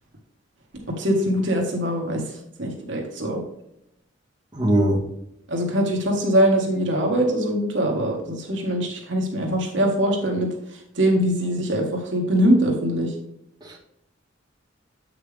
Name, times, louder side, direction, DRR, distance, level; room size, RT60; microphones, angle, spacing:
voice 1, 1.0-2.2 2.6-3.4 5.5-10.5 11.0-13.1, equal, 65° right, 1 dB, 1.6 m, -22 dB
voice 2, 4.5-5.0 13.6-13.8, right 1 dB, 20° right, -4 dB, 1.8 m, -20 dB
8.4 x 5.9 x 3.4 m, 0.78 s
head